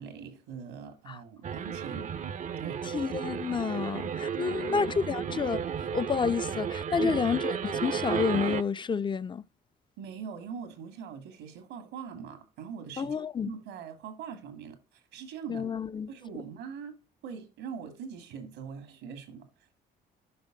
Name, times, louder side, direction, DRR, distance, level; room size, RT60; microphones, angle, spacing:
voice 1, 0.0-2.1 2.6-2.8 4.5-5.1 7.0-7.2 10.0-13.2 13.4-15.7 16.1-16.9 17.2-19.5, right 7 dB, 90° right, 1.9 m, -42 dB
sound 1, 1.4-8.6, right 7 dB, 45° right, 0.6 m, -33 dB
voice 2, 2.8-9.4 13.0-13.5 15.5-16.1, left 6 dB, 25° left, 0.5 m, -30 dB
11.0 x 5.8 x 3.7 m
supercardioid pair, 70°, 18 cm